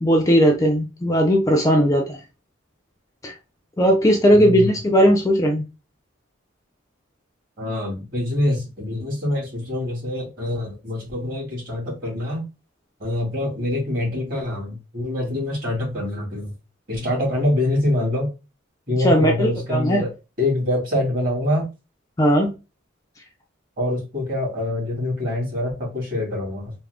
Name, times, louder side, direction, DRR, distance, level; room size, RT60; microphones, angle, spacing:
voice 1, 0.0-2.2 3.2-3.3 3.8-5.6 19.0-20.1 22.2-22.5, equal, 15° left, 0.4 m, -17 dB
voice 2, 4.3-4.7 7.6-12.4 13.0-16.5 16.9-18.3 18.9-20.1 20.4-21.6 23.8-26.7, left 1 dB, 45° right, 2.0 m, -25 dB
3.6 x 2.0 x 3.3 m
head